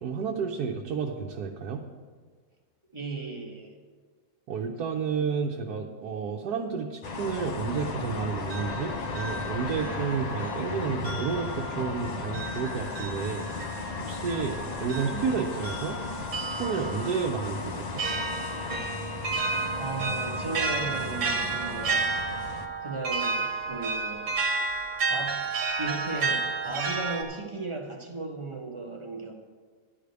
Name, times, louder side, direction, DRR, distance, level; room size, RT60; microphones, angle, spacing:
voice 1, 0.0-1.8 4.5-13.5 14.1-16.0 16.4-18.0, right 6 dB, 75° right, 1 dB, 1.3 m, -31 dB
voice 2, 2.9-3.7 19.7-22.5 22.8-24.4 25.1-25.5 25.8-29.3, right 3 dB, 20° right, 1 dB, 1.0 m, -36 dB
sound 1, 7.0-22.7, left 3 dB, 85° left, 0.3 m, -35 dB
sound 2, 8.1-10.7 11.0-27.2, right 4 dB, 55° right, 1.4 m, -32 dB
11.0 x 5.0 x 8.0 m, 1.5 s
omnidirectional pair, 1.7 m